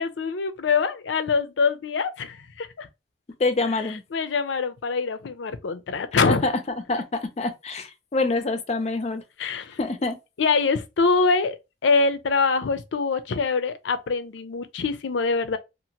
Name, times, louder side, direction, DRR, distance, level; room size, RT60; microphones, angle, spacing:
voice 1, 0.0-2.9 4.1-6.4 9.4-9.8 10.4-15.6, left 4 dB, 90° left, 0.5 m, -24 dB
voice 2, 3.4-4.0 6.2-6.5 6.9-9.2 9.8-10.2, left 3 dB, 35° left, 0.4 m, -26 dB
2.8 x 2.4 x 2.8 m
head